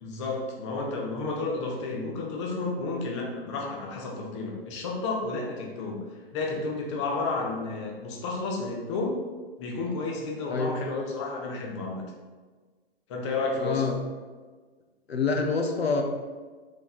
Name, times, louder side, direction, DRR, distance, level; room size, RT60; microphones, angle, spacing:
voice 1, 0.0-6.0 6.3-9.2 9.6-12.0 13.1-13.9, left 3 dB, 30° left, -1 dB, 0.6 m, -31 dB
voice 2, 10.5-10.8 13.6-13.9 15.1-16.0, left 4 dB, 85° left, 3 dB, 0.5 m, -26 dB
4.1 x 3.2 x 2.4 m, 1.4 s
figure-of-eight pair, 120°, 30 cm